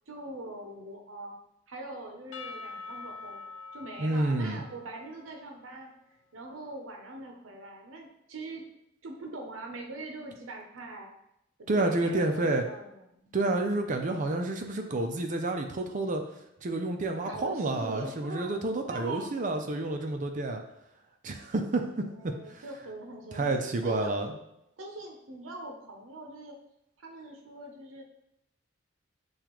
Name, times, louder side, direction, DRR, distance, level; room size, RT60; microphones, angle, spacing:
voice 1, 0.1-1.4 1.7-3.4 3.7-5.9 6.3-8.6 9.0-11.1 11.6-13.3 17.2-18.5 18.9-19.3 22.0-24.1 24.8-26.6 27.0-28.0, right 2 dB, 90° right, 2 dB, 0.7 m, -42 dB
Percussion / Church bell, 2.3-6.2, left 4 dB, 85° left, 0.4 m, -45 dB
voice 2, 4.0-4.6 11.7-12.6 13.3-16.2 16.6-20.6 21.2-22.6 23.3-24.4, right 2 dB, 40° right, 4 dB, 0.5 m, -29 dB
6.9 x 2.4 x 3.0 m, 0.81 s
head